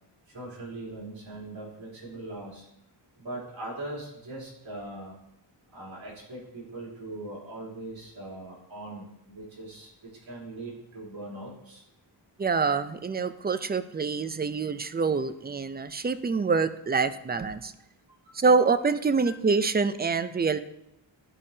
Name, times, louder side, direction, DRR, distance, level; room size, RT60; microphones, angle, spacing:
voice 1, 0.3-2.6 3.2-5.1 5.7-9.9 10.2-11.8 18.6-18.7 19.2-19.4, right 2 dB, 80° right, -5 dB, 3.3 m, -40 dB
voice 2, 12.4-17.7 18.3-20.6, right 4 dB, 20° right, 12 dB, 0.4 m, -26 dB
12.0 x 5.2 x 2.8 m, 0.81 s
cardioid pair, 60°, 46 cm